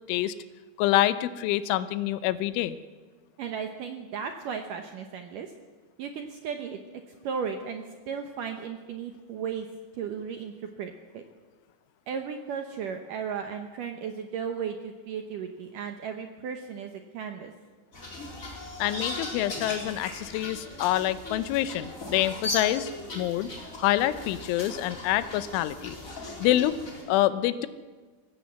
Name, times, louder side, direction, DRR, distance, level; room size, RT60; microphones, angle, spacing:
voice 1, 0.8-2.8 18.8-23.5 23.8-26.0 26.4-26.8 27.1-27.7, left 14 dB, 90° left, 14 dB, 3.3 m, -26 dB
voice 2, 3.4-5.5 6.0-6.8 7.2-9.7 9.9-11.2 12.1-17.5, right 6 dB, 75° right, 5 dB, 1.9 m, -35 dB
sound 1, 17.9-27.0, left 1 dB, 20° left, 4.0 m, -38 dB
21.0 x 16.5 x 8.3 m, 1.4 s
omnidirectional pair, 5.4 m